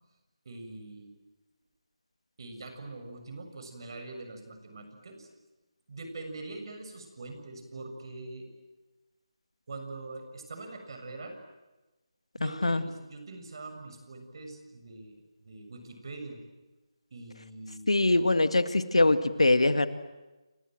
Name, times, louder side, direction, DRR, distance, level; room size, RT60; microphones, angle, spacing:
voice 1, 0.5-1.1 2.4-5.3 5.9-8.5 9.7-11.4 12.4-16.4 17.1-17.9, right 2 dB, 50° right, 6 dB, 6.9 m, -43 dB
voice 2, 12.4-12.8 17.9-19.9, left 2 dB, 85° left, 11 dB, 1.9 m, -23 dB
29.0 x 26.0 x 7.8 m, 1.1 s
figure-of-eight pair, 160°, 3 cm